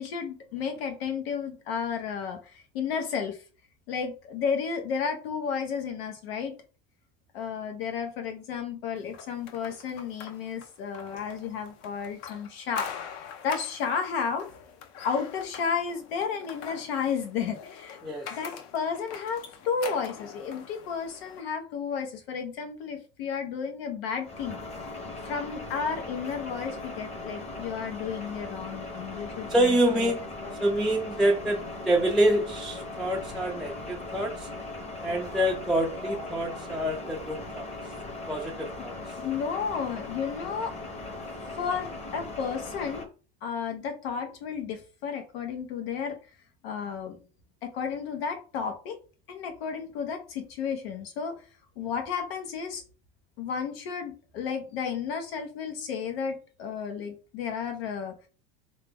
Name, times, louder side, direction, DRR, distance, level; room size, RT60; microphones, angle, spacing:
voice 1, 0.0-3.4 3.9-6.5 7.3-12.9 13.1-14.5 15.0-18.0 18.3-24.9 25.2-30.1 30.4-30.5 39.2-40.7 41.6-43.1 43.4-46.2 46.6-47.2 47.6-49.0 49.3-51.4 51.8-52.8 53.4-58.1, left 6 dB, 90° left, 5 dB, 1.1 m, -32 dB
sound 1, 9.1-21.4, left 8 dB, 55° left, 0.7 m, -43 dB
sound 2, 24.2-43.1, left 2 dB, 20° left, 0.8 m, -39 dB
voice 2, 29.5-30.2 30.6-34.5 35.0-37.7 38.3-38.9, right 1 dB, ahead, -3 dB, 0.4 m, -26 dB
3.4 x 2.8 x 3.5 m, 0.36 s
supercardioid pair, 125°, 29 cm